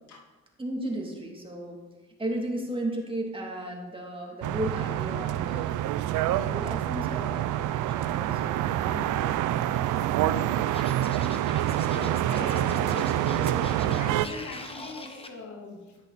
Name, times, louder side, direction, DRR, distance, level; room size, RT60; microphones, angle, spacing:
voice 1, 0.6-1.8 2.2-5.8 6.3-9.5, right 1 dB, 15° right, 0 dB, 2.7 m, -35 dB
sound 1, 4.4-14.3, right 12 dB, 85° right, 0.6 m, -27 dB
Scratching (performance technique), 10.7-15.3, left 2 dB, 20° left, 1.4 m, -42 dB
voice 2, 11.9-16.0, left 3 dB, 70° left, 1 dB, 2.6 m, -40 dB
13.0 x 10.0 x 4.2 m, 1.2 s
cardioid pair, 90°, 30 cm